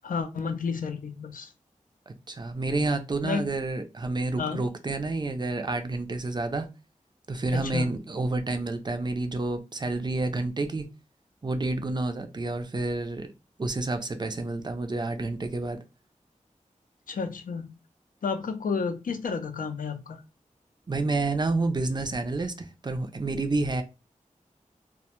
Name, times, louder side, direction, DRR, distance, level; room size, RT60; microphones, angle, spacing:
voice 1, 0.0-1.5 3.2-3.5 4.4-4.6 7.5-7.9 17.1-17.8 18.2-20.2, left 5 dB, 85° left, 0.4 m, -31 dB
voice 2, 2.1-6.7 7.3-10.9 11.4-13.3 13.6-15.8 20.9-23.8, right 2 dB, 35° right, 0.4 m, -29 dB
2.1 x 2.0 x 2.8 m
wide cardioid pair, 70°, 14 cm